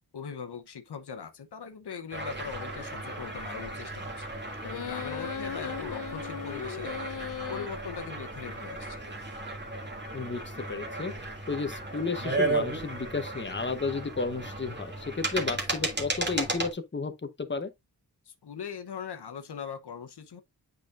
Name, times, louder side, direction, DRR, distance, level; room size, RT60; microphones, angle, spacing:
voice 1, 0.1-4.3 4.6-6.9 7.5-9.1 18.3-20.4, left 6 dB, 85° left, 0.9 m, -40 dB
sound 1, 2.1-16.7, right 2 dB, 25° right, 2.2 m, -35 dB
sound 2, 4.6-7.7, left 8 dB, 55° left, 0.5 m, -37 dB
voice 2, 10.1-11.1 11.5-17.7, left 4 dB, 30° left, 1.0 m, -33 dB
8.2 x 5.1 x 2.5 m
wide cardioid pair, 85°, 39 cm